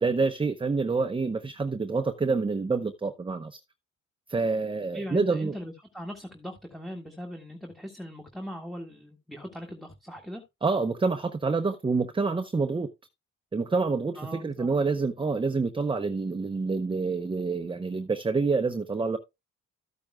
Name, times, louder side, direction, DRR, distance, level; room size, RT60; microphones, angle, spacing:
voice 1, 0.0-3.6 4.3-5.5 10.6-12.9 13.5-19.2, right 4 dB, 15° right, 0.8 m, -27 dB
voice 2, 4.9-10.4 14.2-14.7, equal, ahead, 1.7 m, -40 dB
13.5 x 8.6 x 2.2 m
cardioid pair, 90°, 30 cm